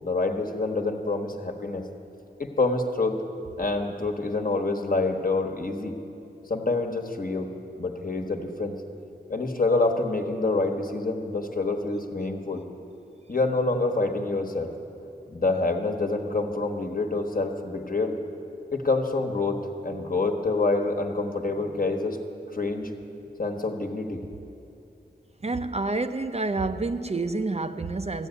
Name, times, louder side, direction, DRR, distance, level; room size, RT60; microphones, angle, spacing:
voice 1, 0.0-1.8 2.4-3.1 3.6-6.0 6.5-7.5 7.8-8.7 9.3-12.6 13.3-14.7 15.3-18.2 18.7-22.2 22.5-22.9 23.4-24.2, left 3 dB, 55° left, 3 dB, 1.3 m, -27 dB
voice 2, 25.4-28.3, right 3 dB, 35° right, 8 dB, 0.5 m, -28 dB
14.5 x 8.0 x 9.6 m, 2.8 s
wide cardioid pair, 70°, 18 cm